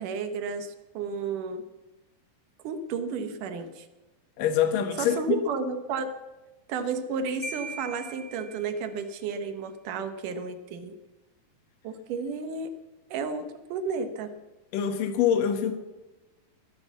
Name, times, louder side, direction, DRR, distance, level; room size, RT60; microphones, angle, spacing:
voice 1, 0.0-1.6 2.6-3.9 5.0-6.1 6.7-11.0 11.8-12.8 13.1-14.3, right 5 dB, 70° right, 9 dB, 2.2 m, -32 dB
voice 2, 4.4-5.4 14.7-15.7, left 9 dB, 65° left, 7 dB, 2.8 m, -25 dB
Marimba xylophone, 7.4-9.2, right 2 dB, 30° left, 1.5 m, -40 dB
20.5 x 7.9 x 7.2 m, 1.1 s
omnidirectional pair, 4.5 m